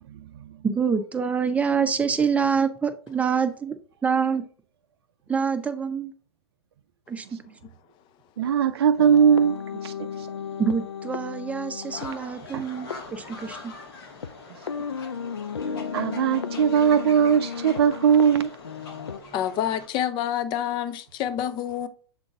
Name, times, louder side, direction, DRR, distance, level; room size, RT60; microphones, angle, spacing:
voice 1, 0.1-0.6 8.4-10.3 12.5-12.7 15.9-18.5, right 8 dB, 65° right, 0.4 m, -20 dB
voice 2, 0.6-3.7 4.0-4.4 5.3-6.1 7.1-7.4 10.6-13.7, right 6 dB, 10° right, 0.7 m, -26 dB
sound 1, 9.0-14.3 14.7-19.2, left 6 dB, 80° left, 0.5 m, -35 dB
sound 2, 11.9-19.9, left 3 dB, 60° left, 1.9 m, -43 dB
voice 3, 19.3-21.9, left 10 dB, 35° left, 0.6 m, -27 dB
7.2 x 3.8 x 3.6 m
figure-of-eight pair, 100°, 14 cm